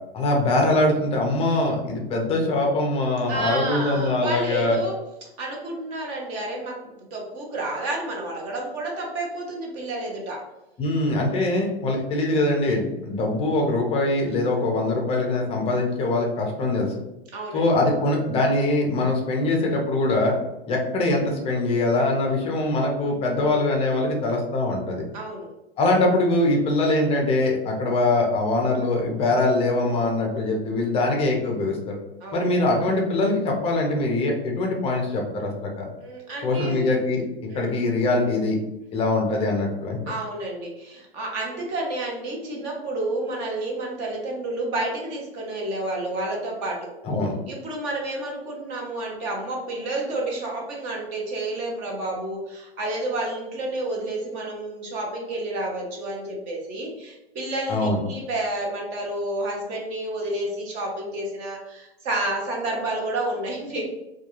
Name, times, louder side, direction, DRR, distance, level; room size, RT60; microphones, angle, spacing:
voice 1, 0.1-4.8 10.8-16.9 17.5-20.4 20.7-25.0 25.8-32.0 32.3-35.9 36.4-37.2 37.5-38.6 38.9-40.0 47.0-47.3 57.7-58.0, left 2 dB, 20° left, 1 dB, 0.5 m, -23 dB
voice 2, 3.3-5.0 5.4-10.4 17.3-17.7 25.1-25.5 32.2-32.5 36.0-36.9 37.5-37.7 40.1-46.9 47.5-63.9, right 2 dB, 35° right, -1 dB, 0.7 m, -30 dB
2.3 x 2.2 x 2.9 m, 0.94 s
hypercardioid pair, 130°, 30 cm